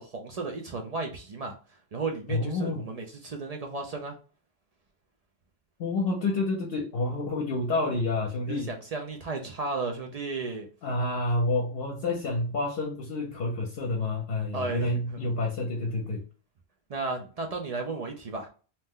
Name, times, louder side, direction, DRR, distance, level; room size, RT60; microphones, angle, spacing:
voice 1, 0.0-1.5 1.9-4.2 8.5-10.7 14.5-15.3 16.9-18.5, right 3 dB, 55° right, 2 dB, 0.4 m, -34 dB
voice 2, 2.3-2.8 5.8-8.7 10.8-16.2, left 2 dB, 65° left, 0 dB, 0.8 m, -29 dB
2.8 x 2.1 x 3.5 m, 0.36 s
omnidirectional pair, 1.1 m